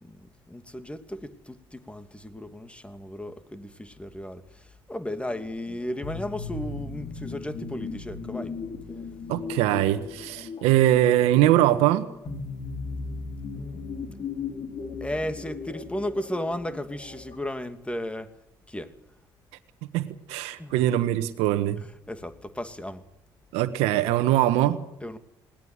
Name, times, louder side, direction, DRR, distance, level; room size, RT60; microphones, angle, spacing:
voice 1, 0.0-8.5 13.5-14.0 15.0-18.3 18.7-18.9 20.6-20.8 21.8-23.0 25.0-25.2, left 1 dB, 10° left, 2.6 m, -35 dB
sound 1, 5.2-17.4, left 4 dB, 50° left, 4.9 m, -37 dB
voice 2, 9.3-12.1 19.9-21.8 23.5-24.8, right 13 dB, 80° right, 1.3 m, -22 dB
20.5 x 17.5 x 9.5 m
hypercardioid pair, 55°, 11 cm